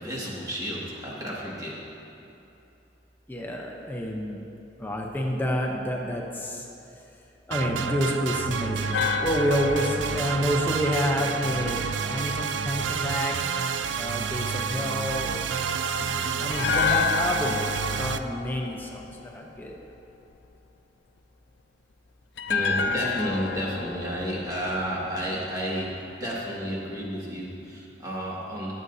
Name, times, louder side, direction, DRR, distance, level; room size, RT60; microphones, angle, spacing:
voice 1, 0.0-1.8 22.5-28.7, equal, 20° right, -6 dB, 2.1 m, -31 dB
voice 2, 3.3-4.4 4.8-6.6 7.5-11.8 12.1-13.4 14.0-15.4 16.0-17.6 17.9-19.1 19.3-19.7, equal, 10° left, -1 dB, 0.8 m, -29 dB
sound 1, 7.5-18.2, right 6 dB, 90° right, 0.4 m, -29 dB
sound 2, 8.9-12.1 16.5-19.7 22.4-25.6 25.8-26.0, left 6 dB, 70° left, 0.4 m, -30 dB
19.5 x 8.0 x 2.8 m, 2.8 s
head